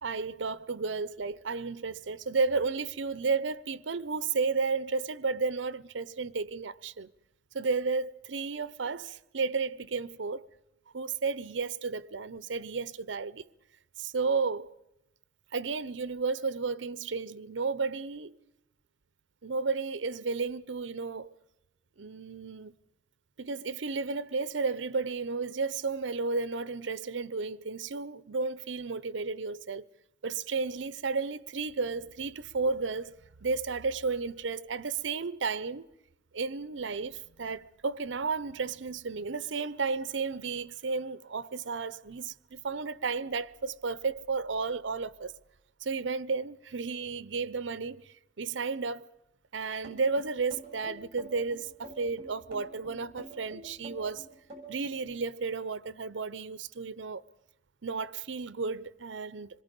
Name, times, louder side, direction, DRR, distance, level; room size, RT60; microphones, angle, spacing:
voice 1, 0.0-7.1 7.5-10.5 10.9-13.4 14.0-14.8 15.5-18.4 19.4-21.3 22.0-22.7 23.4-29.8 30.2-35.9 36.3-45.3 45.8-48.0 48.4-49.1 49.5-54.3 54.7-57.2 57.8-59.5, right 4 dB, 80° right, 0.7 m, -33 dB
sound 1, 49.8-55.0, right 2 dB, 30° right, 7.7 m, -46 dB
26.0 x 22.0 x 5.3 m
head